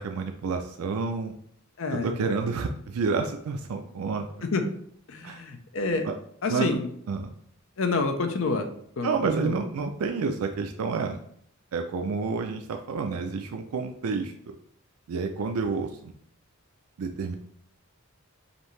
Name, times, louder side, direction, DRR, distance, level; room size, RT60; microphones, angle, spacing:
voice 1, 0.0-1.3 1.9-4.3 5.2-5.4 6.1-6.2 6.5-6.8 7.1-7.3 9.0-11.2 11.7-14.3 15.1-16.1 17.0-17.3, right 4 dB, 85° right, 5 dB, 0.4 m, -29 dB
voice 2, 1.8-2.1 4.4-4.7 5.1-6.1 6.4-6.9 7.8-8.7 9.0-9.6, left 3 dB, 65° left, 6 dB, 0.6 m, -28 dB
5.1 x 2.7 x 3.1 m, 0.65 s
head